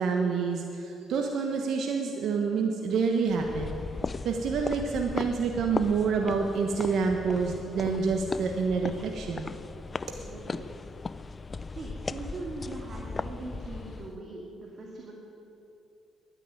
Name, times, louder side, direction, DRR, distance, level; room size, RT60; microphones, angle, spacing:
voice 1, 0.0-3.8 4.2-9.5, right 5 dB, 70° right, 3 dB, 1.2 m, -28 dB
sound 1, 3.3-14.2, left 4 dB, 30° left, 0.4 m, -37 dB
voice 2, 10.2-10.9 11.7-15.1, right 2 dB, 50° right, -2 dB, 2.3 m, -41 dB
11.5 x 10.0 x 9.5 m, 2.7 s
cardioid pair, 90°, 0 cm